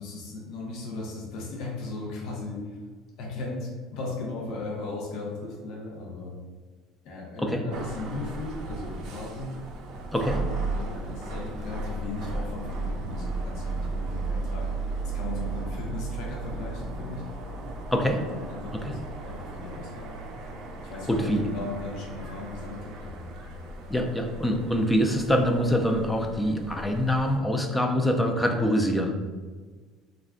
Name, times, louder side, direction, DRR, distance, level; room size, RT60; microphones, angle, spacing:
voice 1, 0.0-2.8 3.2-6.4 7.0-9.6 10.2-14.7 15.1-17.2 18.3-20.2 20.8-23.6, left 3 dB, 65° left, -2 dB, 0.6 m, -37 dB
sound 1, 7.7-27.4, right 3 dB, 60° right, 0.4 m, -35 dB
voice 2, 17.9-18.2 18.7-18.9 21.1-21.5 23.9-29.2, equal, 10° left, 3 dB, 0.3 m, -25 dB
2.3 x 2.1 x 3.5 m, 1.4 s
cardioid pair, 125°, 0 cm